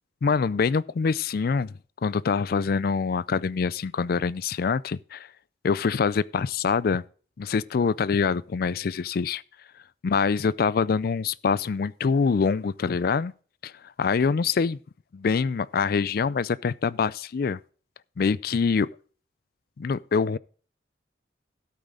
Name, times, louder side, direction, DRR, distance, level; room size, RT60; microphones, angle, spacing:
voice 1, 0.2-1.7 2.0-5.3 5.6-7.0 7.4-9.4 10.0-13.3 13.6-13.7 14.0-14.8 15.1-17.6 18.2-18.9 19.8-20.4, left 5 dB, 55° left, 0.4 m, -25 dB
13.0 x 8.4 x 3.8 m
head